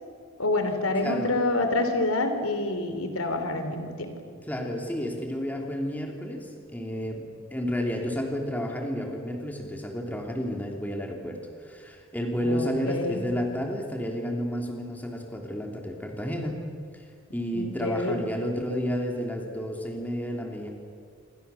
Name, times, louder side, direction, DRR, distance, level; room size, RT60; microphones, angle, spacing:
voice 1, 0.4-4.1 12.4-13.2 17.5-18.2, left 2 dB, 85° left, 7 dB, 3.4 m, -27 dB
voice 2, 1.0-1.4 4.5-7.2 7.5-16.6 16.9-17.0 17.3-20.7, equal, 10° left, 1 dB, 3.2 m, -31 dB
27.5 x 25.5 x 7.1 m, 2.1 s
head